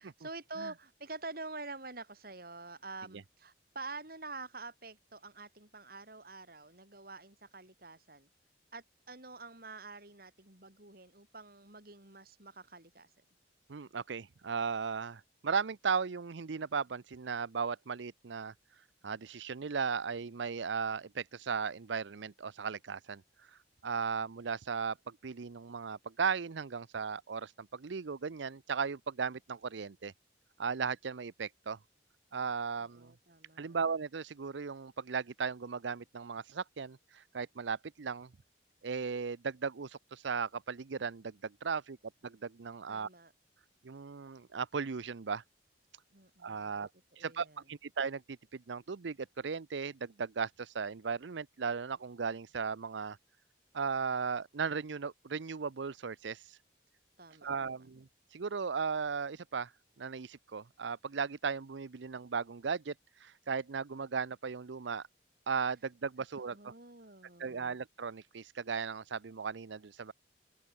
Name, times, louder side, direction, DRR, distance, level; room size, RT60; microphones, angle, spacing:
voice 1, 0.0-8.3 8.7-13.1 32.8-33.8 42.9-43.3 46.1-46.8 47.1-47.6 57.2-57.7 66.5-67.8, right 3 dB, 55° right, 5.5 m, -47 dB
voice 2, 13.7-18.5 19.0-23.2 23.8-30.1 30.6-31.8 32.3-33.1 33.6-38.3 38.8-42.0 42.2-43.1 43.8-45.4 46.4-46.9 47.2-53.2 53.7-56.6 57.4-59.7 60.0-62.9 63.2-65.0 65.5-66.7 67.4-70.1, right 5 dB, 80° right, 0.6 m, -36 dB
open air
head